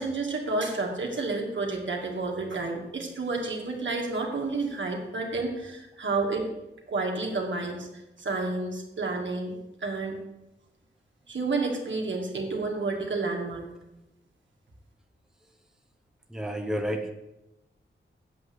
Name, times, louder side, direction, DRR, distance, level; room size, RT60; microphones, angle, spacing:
voice 1, 0.0-6.5 6.9-7.9 8.2-10.2 11.3-13.7, right 3 dB, 70° right, 0 dB, 2.3 m, -30 dB
voice 2, 16.3-17.1, equal, 5° right, 4 dB, 1.1 m, -30 dB
8.4 x 6.6 x 7.9 m, 0.94 s
wide cardioid pair, 75°, 20 cm